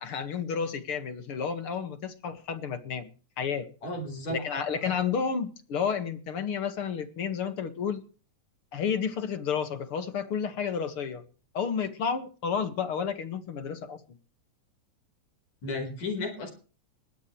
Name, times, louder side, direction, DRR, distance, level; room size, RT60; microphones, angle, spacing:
voice 1, 0.0-3.1 3.4-3.7 4.3-8.0 8.7-11.2 11.5-14.0, left 6 dB, 50° left, 2.3 m, -31 dB
voice 2, 3.8-4.4 15.6-16.5, left 2 dB, 65° left, 5.7 m, -33 dB
20.5 x 17.5 x 3.2 m
omnidirectional pair, 3.4 m